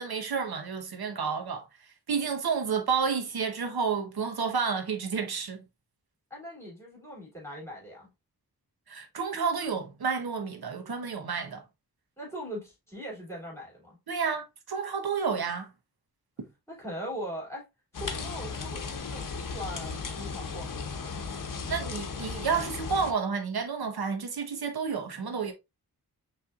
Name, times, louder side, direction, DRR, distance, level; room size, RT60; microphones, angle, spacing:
voice 1, 0.0-1.7 2.1-5.6 8.9-11.6 14.1-15.7 21.7-25.5, right 5 dB, 70° right, 1.0 m, -30 dB
voice 2, 6.3-8.1 12.2-14.0 16.7-17.7 17.9-21.2, equal, 5° left, 2.7 m, -40 dB
sound 1, 17.9-23.1, left 4 dB, 55° left, 0.8 m, -36 dB
5.5 x 3.4 x 2.4 m
wide cardioid pair, 80°, 39 cm